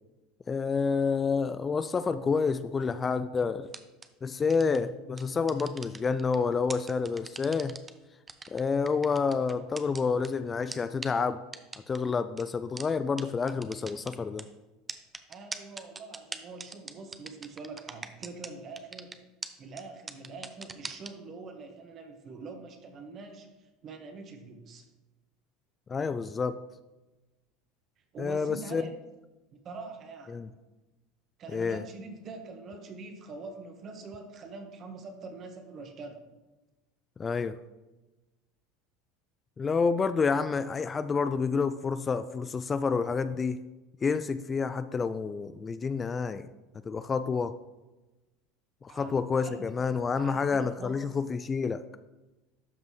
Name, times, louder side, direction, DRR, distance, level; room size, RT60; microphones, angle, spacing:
voice 1, 0.5-3.7 4.2-7.8 8.5-11.4 11.9-14.5 25.9-26.6 28.2-28.9 30.3-30.5 31.5-31.8 37.2-37.5 39.6-43.6 44.0-46.5 46.8-47.5 48.8-51.8, left 5 dB, 25° left, 12 dB, 0.3 m, -29 dB
sound 1, 3.7-4.1 4.5-4.8 5.2-6.4 6.7-7.9 8.3-10.3 10.7-10.8 11.0-11.1 11.5-12.0 12.4-12.5 12.8-12.9 13.2-13.3 13.5-14.4 14.9-18.5 18.8-19.1 19.4-19.5 19.8-19.9 20.1-21.1, right 4 dB, 20° right, 0.6 m, -40 dB
voice 2, 15.3-19.2 19.6-24.9 28.1-28.9 29.6-30.5 31.4-36.2 48.9-49.7 50.2-51.2, right 3 dB, 40° right, 5 dB, 1.5 m, -44 dB
12.0 x 5.3 x 3.2 m, 1.1 s
supercardioid pair, 110°, 0 cm